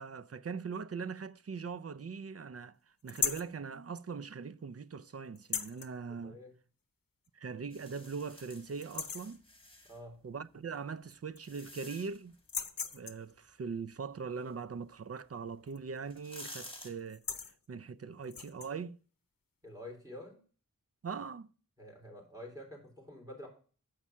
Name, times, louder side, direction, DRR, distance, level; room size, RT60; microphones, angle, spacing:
voice 1, 0.0-2.8 3.0-6.4 7.3-9.4 10.2-12.4 12.9-19.0 21.0-21.5, right 5 dB, 45° right, 0.4 m, -41 dB
sound 1, 3.1-3.5 5.4-5.9 7.3-7.4 7.8-7.9 8.3-8.6 8.8-9.4 10.7-10.8 11.1-11.8 12.4-13.3 15.7-16.0 16.3-16.5 17.0-17.6 18.2-18.7, left 6 dB, 80° left, 0.7 m, -37 dB
voice 2, 6.1-6.5 9.9-10.2 19.6-20.4 21.8-23.5, left 1 dB, 10° right, 3.8 m, -48 dB
sound 2, 7.7-10.0 10.8-12.4 15.4-15.5 16.0-16.9, left 1 dB, 15° left, 2.3 m, -51 dB
7.3 x 5.5 x 6.1 m
wide cardioid pair, 45°, 33 cm